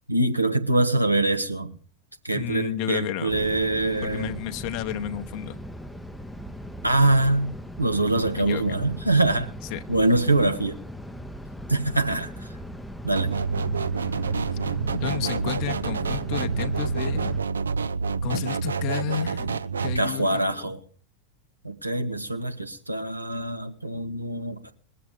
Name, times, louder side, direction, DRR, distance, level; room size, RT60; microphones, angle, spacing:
voice 1, 0.1-1.7 2.2-4.3 6.8-9.5 9.9-10.8 11.7-12.5 13.0-13.3 19.9-20.8 21.6-24.7, right 2 dB, 85° right, 1.4 m, -24 dB
voice 2, 2.3-3.4 4.0-5.6 8.4-8.8 9.7-9.8 14.9-17.3 18.2-20.7, left 11 dB, 45° left, 0.8 m, -32 dB
sound 1, 3.3-17.4, equal, 5° left, 0.6 m, -39 dB
sound 2, 13.2-20.0, right 5 dB, 70° right, 0.5 m, -27 dB
21.5 x 7.7 x 4.9 m
figure-of-eight pair, 90°, 0 cm